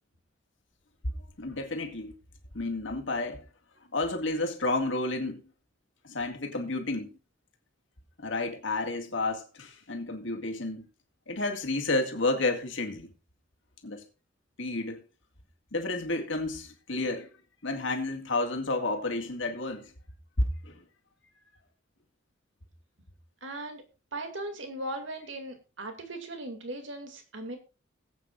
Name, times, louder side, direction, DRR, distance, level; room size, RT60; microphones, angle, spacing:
voice 1, 1.4-2.1 2.5-3.4 3.9-5.4 6.0-7.1 8.2-10.9 11.3-13.1 13.8-14.0 14.6-15.0 15.7-17.3 17.6-19.9 20.4-20.8, left 2 dB, 75° left, 2.1 m, -31 dB
voice 2, 23.4-23.8 24.1-27.6, right 1 dB, 75° right, 2.5 m, -38 dB
21.0 x 8.4 x 2.5 m
head